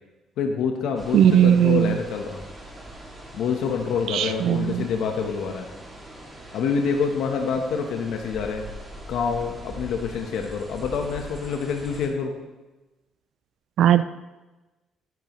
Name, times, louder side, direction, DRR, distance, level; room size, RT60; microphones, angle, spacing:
voice 1, 0.4-2.4 3.3-5.7 6.5-8.6 9.1-12.3, left 6 dB, 75° left, 3 dB, 1.1 m, -26 dB
sound 1, 0.9-12.1, right 1 dB, 15° right, 2.5 m, -42 dB
voice 2, 1.1-1.9 4.1-4.8 13.8-14.0, right 10 dB, 70° right, 12 dB, 0.4 m, -18 dB
12.5 x 11.0 x 3.2 m, 1.1 s
cardioid pair, 105°, 0 cm